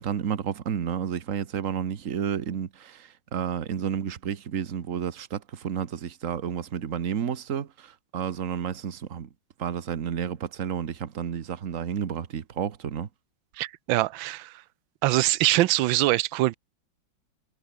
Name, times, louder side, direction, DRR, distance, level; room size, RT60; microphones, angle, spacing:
voice 1, 0.0-9.3 9.6-13.1, right 8 dB, 45° right, 1.5 m, -31 dB
voice 2, 13.6-14.6 15.0-16.5, right 17 dB, 80° right, 1.4 m, -23 dB
omnidirectional pair, 2.1 m